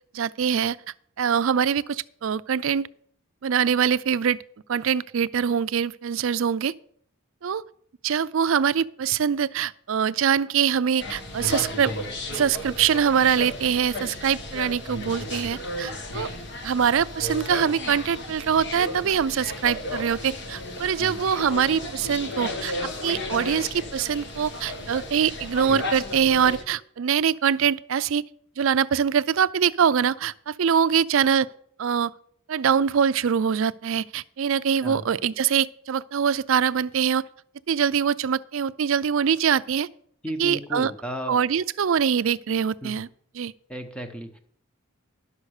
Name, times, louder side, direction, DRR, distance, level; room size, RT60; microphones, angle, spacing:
voice 1, 0.1-0.8 1.2-2.9 3.4-4.4 4.7-6.7 7.4-7.6 8.0-11.9 12.3-16.3 16.6-28.2 28.6-31.5 31.8-32.1 32.5-37.2 37.7-39.9 40.4-40.9 41.3-43.1 43.3-43.5, right 7 dB, 65° right, 0.4 m, -23 dB
sound 1, 11.0-26.6, left 1 dB, 55° left, 1.4 m, -34 dB
voice 2, 40.2-41.4 42.8-42.9 43.7-44.4, equal, 5° left, 1.0 m, -34 dB
11.0 x 6.7 x 6.5 m
head